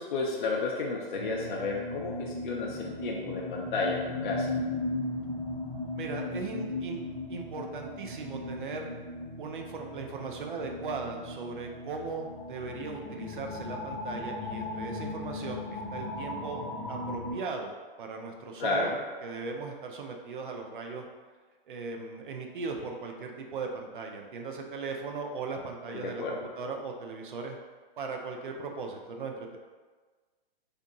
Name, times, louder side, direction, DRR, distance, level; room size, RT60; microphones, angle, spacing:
voice 1, 0.0-4.5 18.6-19.0 25.9-26.4, left 3 dB, 55° left, -2 dB, 0.4 m, -32 dB
sound 1, 1.1-17.3, left 2 dB, 5° right, 0.4 m, -37 dB
voice 2, 6.0-7.0 7.3-8.9 9.4-18.9 19.2-21.1 21.7-27.6 28.0-29.6, right 4 dB, 55° right, 2 dB, 0.5 m, -38 dB
2.7 x 2.5 x 2.6 m, 1.4 s
hypercardioid pair, 170°, 30 cm